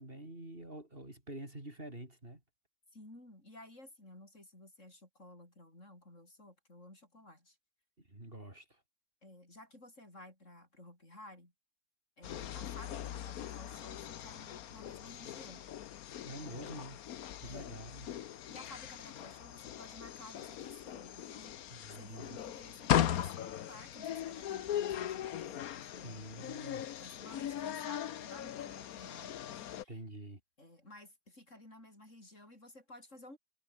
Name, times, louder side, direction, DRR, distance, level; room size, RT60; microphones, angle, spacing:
voice 1, 0.0-2.4 8.0-8.8 16.2-17.0 17.4-18.1 21.7-22.4 26.0-26.9 29.9-30.4, right 1 dB, 40° right, 5.4 m, -47 dB
voice 2, 2.9-7.6 9.2-11.5 12.2-15.7 17.4-17.7 18.5-21.5 21.9-26.3 26.8-30.0 30.6-33.4, left 1 dB, 55° left, 8.5 m, -54 dB
sound 1, 12.2-29.8, left 11 dB, 85° left, 1.3 m, -39 dB
omnidirectional pair, 1.5 m